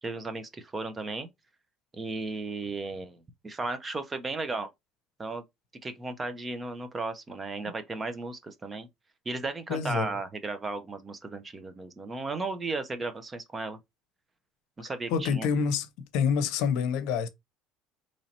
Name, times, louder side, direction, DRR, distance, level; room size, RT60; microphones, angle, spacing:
voice 1, 0.0-1.3 1.9-3.2 3.4-4.7 5.2-5.4 5.8-8.9 9.3-13.8 14.8-15.5, right 3 dB, 20° right, 0.7 m, -35 dB
voice 2, 9.7-10.1 15.1-15.9 16.1-17.3, left 6 dB, 75° left, 0.6 m, -27 dB
3.1 x 2.8 x 4.1 m
supercardioid pair, 115°, 0 cm